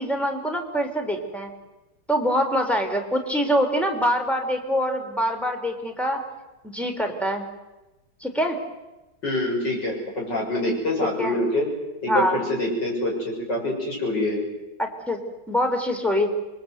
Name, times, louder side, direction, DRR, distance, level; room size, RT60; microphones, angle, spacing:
voice 1, 0.0-1.5 2.1-6.2 6.6-7.4 8.2-8.6 11.2-11.3 12.1-12.4 14.8-15.2 15.5-16.3, equal, ahead, 4 dB, 3.4 m, -24 dB
voice 2, 9.2-11.7 12.0-14.4, left 1 dB, 60° left, -1 dB, 7.6 m, -25 dB
27.5 x 22.5 x 8.1 m, 1.1 s
omnidirectional pair, 2.1 m